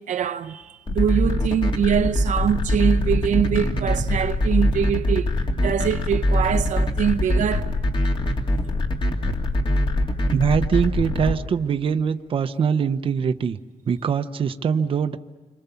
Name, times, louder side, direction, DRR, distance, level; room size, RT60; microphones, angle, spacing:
voice 1, 0.0-7.7 9.3-9.4, right 8 dB, 85° right, 0.9 m, -23 dB
sound 1, 0.9-11.3, left 1 dB, 40° left, 2.6 m, -22 dB
voice 2, 10.3-13.6 13.9-15.2, right 6 dB, 45° right, 0.8 m, -22 dB
28.5 x 25.5 x 7.0 m
wide cardioid pair, 180°, 13 cm